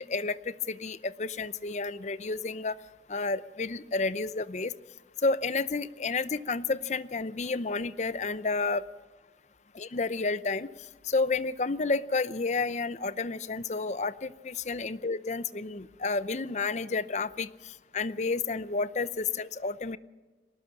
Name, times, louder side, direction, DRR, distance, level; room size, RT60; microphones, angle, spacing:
voice 1, 0.1-2.8 3.1-4.7 5.2-8.8 9.7-10.7 11.0-20.0, left 3 dB, 40° left, 15 dB, 0.6 m, -31 dB
21.0 x 18.5 x 7.0 m, 1.3 s
head